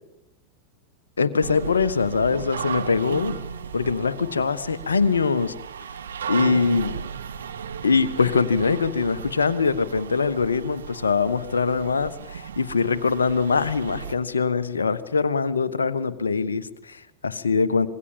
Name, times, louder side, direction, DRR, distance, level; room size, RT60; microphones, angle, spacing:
voice 1, 1.2-3.3 3.7-5.5 6.3-7.0 7.8-17.9, left 5 dB, 75° left, 12 dB, 1.3 m, -23 dB
sound 1, 1.4-14.1, right 7 dB, 65° right, 1.7 m, -35 dB
26.0 x 21.5 x 7.2 m, 0.84 s
figure-of-eight pair, 90°, 0 cm